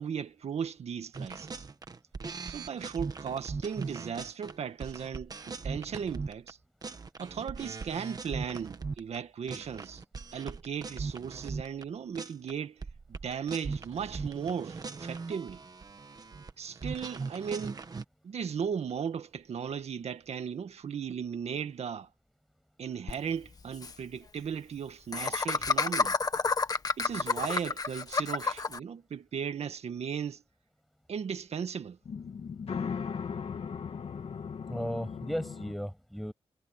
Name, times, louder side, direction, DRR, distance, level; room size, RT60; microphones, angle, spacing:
voice 1, 0.0-1.6 2.4-6.6 7.2-10.0 10.3-12.8 13.1-15.6 16.6-17.8 18.2-22.1 22.8-26.2 27.0-30.4 31.1-32.0, right 7 dB, 85° right, 1.7 m, -36 dB
sound 1, 1.1-6.5 6.8-9.2 9.5-11.8 12.2-12.5 12.8-18.0, right 4 dB, 35° right, 1.3 m, -39 dB
Laughter, 23.1-23.2 23.4-23.5 23.7-23.9 25.1-28.8, left 4 dB, 35° left, 1.5 m, -29 dB
sound 2, 32.1-35.7, left 6 dB, 70° left, 2.2 m, -37 dB
voice 2, 34.7-36.3, equal, ahead, 7.7 m, -35 dB
wide cardioid pair, 175°, 11 cm